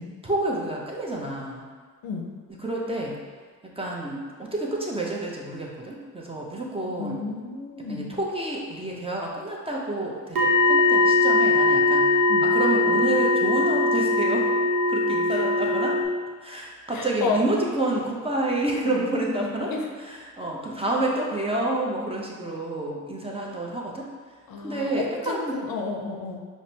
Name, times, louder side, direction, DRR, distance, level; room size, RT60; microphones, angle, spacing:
voice 1, 0.2-1.6 2.6-3.2 3.8-7.2 7.9-12.1 12.4-14.5 14.9-16.0 16.4-24.1 24.6-25.6, right 2 dB, 15° right, -3 dB, 0.7 m, -29 dB
voice 2, 7.0-8.1 12.3-12.4 16.9-17.4 18.9-19.0 19.3-19.9 24.5-26.4, left 4 dB, 65° left, 1 dB, 0.6 m, -32 dB
sound 1, 10.3-16.0, left 2 dB, 65° right, 0.9 m, -21 dB
5.0 x 2.1 x 2.8 m, 1.5 s
supercardioid pair, 55°, 39 cm